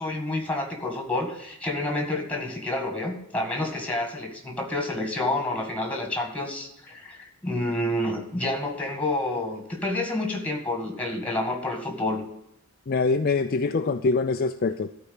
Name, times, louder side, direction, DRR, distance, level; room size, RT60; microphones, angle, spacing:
voice 1, 0.0-12.2, left 2 dB, 5° left, 2 dB, 2.1 m, -29 dB
voice 2, 12.9-14.9, left 4 dB, 40° left, 7 dB, 0.4 m, -24 dB
13.5 x 4.6 x 8.8 m, 0.80 s
head